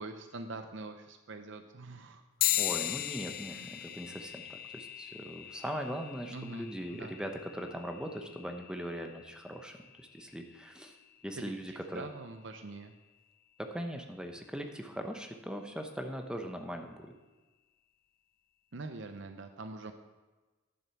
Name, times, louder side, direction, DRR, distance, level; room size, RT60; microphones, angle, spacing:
voice 1, 0.0-2.2 2.6-2.9 3.5-3.8 6.3-7.1 11.3-12.9 18.7-19.9, right 3 dB, 65° right, 7 dB, 0.7 m, -44 dB
sound 1, 2.4-12.2, left 14 dB, 50° left, 0.4 m, -39 dB
voice 2, 2.6-11.0 11.2-12.1 13.6-17.1, equal, 5° right, 4 dB, 0.8 m, -40 dB
10.5 x 7.1 x 5.9 m, 1.2 s
head